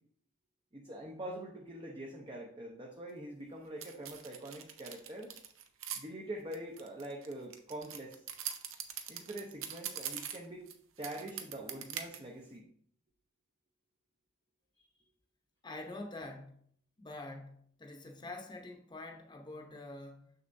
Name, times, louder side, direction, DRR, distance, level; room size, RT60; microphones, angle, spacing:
voice 1, 0.7-5.3 5.9-8.2 9.1-10.7 11.0-12.7, right 1 dB, 25° right, 0.6 m, -44 dB
sound 1, 3.8-6.0 6.5-10.7 11.0-12.2, right 9 dB, 90° right, 0.7 m, -42 dB
voice 2, 15.6-16.7 17.0-20.3, left 2 dB, 20° left, 0.8 m, -46 dB
6.5 x 6.5 x 2.6 m
head